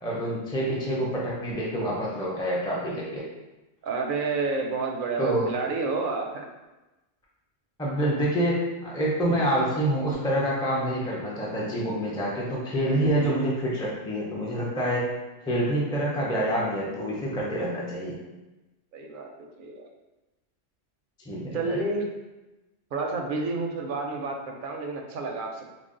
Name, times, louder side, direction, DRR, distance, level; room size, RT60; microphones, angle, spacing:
voice 1, 0.0-3.2 5.2-5.5 7.8-15.1 15.5-18.2 21.3-21.8, right 1 dB, 5° left, -5 dB, 0.3 m, -27 dB
voice 2, 3.8-6.5 18.9-19.9 21.5-22.1 22.9-25.7, right 3 dB, 60° right, 2 dB, 0.6 m, -30 dB
4.0 x 2.0 x 3.7 m, 1.1 s
omnidirectional pair, 1.2 m